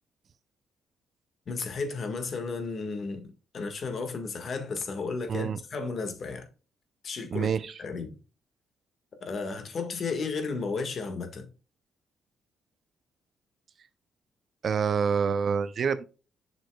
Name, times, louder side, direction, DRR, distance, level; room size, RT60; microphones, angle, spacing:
voice 1, 1.5-6.4 7.0-7.5 7.8-8.1 9.2-11.5, left 4 dB, 50° left, 1.6 m, -33 dB
voice 2, 7.3-7.7 14.6-16.0, right 6 dB, 50° right, 0.5 m, -27 dB
7.8 x 6.1 x 2.3 m
cardioid pair, 90°, 0 cm